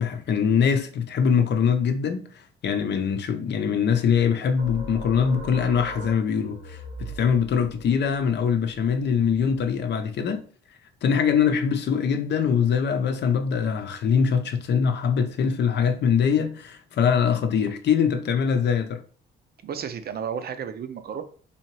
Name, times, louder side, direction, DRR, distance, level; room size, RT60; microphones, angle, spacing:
voice 1, 0.0-10.4 11.0-19.0, left 7 dB, 60° left, 0.6 m, -23 dB
sound 1, 4.6-9.8, right 1 dB, 90° right, 1.2 m, -40 dB
voice 2, 19.6-21.2, right 7 dB, 50° right, 0.6 m, -32 dB
4.2 x 2.8 x 3.0 m
cardioid pair, 90°, 20 cm